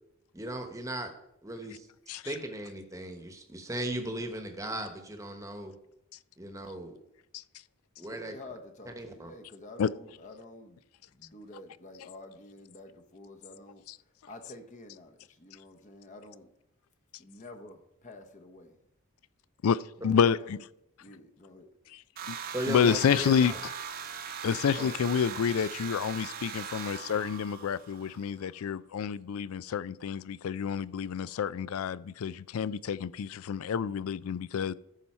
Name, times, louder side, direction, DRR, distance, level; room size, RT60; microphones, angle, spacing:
voice 1, 0.3-1.1 1.4-5.8 6.4-6.9 8.0-8.3 9.0-9.3 22.5-23.6 24.8-24.9, right 1 dB, 15° right, 1.1 m, -37 dB
voice 2, 8.0-10.8 11.1-16.5 17.2-18.8 20.0-20.6 21.0-21.7 24.0-24.2, left 2 dB, 35° left, 0.9 m, -49 dB
voice 3, 19.6-20.6 22.3-22.4 22.7-23.5 24.4-34.7, left 7 dB, 70° left, 0.4 m, -29 dB
sound 1, 22.2-28.3, right 6 dB, 40° right, 0.9 m, -40 dB
14.0 x 5.5 x 4.3 m
head